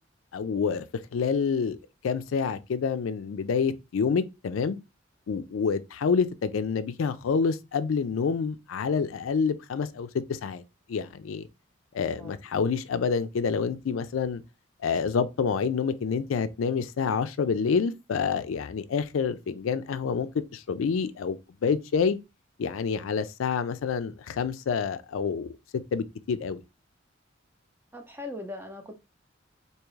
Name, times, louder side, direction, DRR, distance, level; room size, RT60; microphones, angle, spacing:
voice 1, 0.3-0.9 1.1-1.8 2.0-4.8 5.3-10.6 10.9-11.5 11.9-14.4 14.8-22.2 22.6-25.5 25.9-26.6, left 5 dB, 90° left, 0.4 m, -28 dB
voice 2, 27.9-28.9, left 2 dB, 10° right, 0.5 m, -39 dB
3.5 x 2.8 x 3.1 m
head